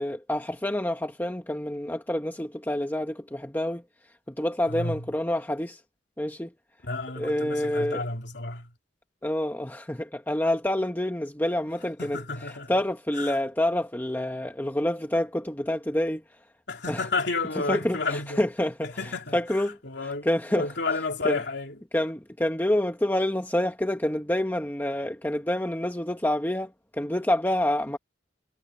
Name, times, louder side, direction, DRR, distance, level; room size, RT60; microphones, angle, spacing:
voice 1, 0.0-3.8 4.3-5.8 6.2-6.5 7.2-8.0 9.2-12.2 12.7-16.4 16.9-17.0 17.7-20.7 21.2-21.4 21.9-28.0, left 1 dB, 10° left, 1.3 m, -27 dB
voice 2, 4.6-5.1 6.8-8.7 12.0-12.8 13.2-13.4 16.7-18.4 18.8-21.8, left 3 dB, 65° left, 3.6 m, -31 dB
head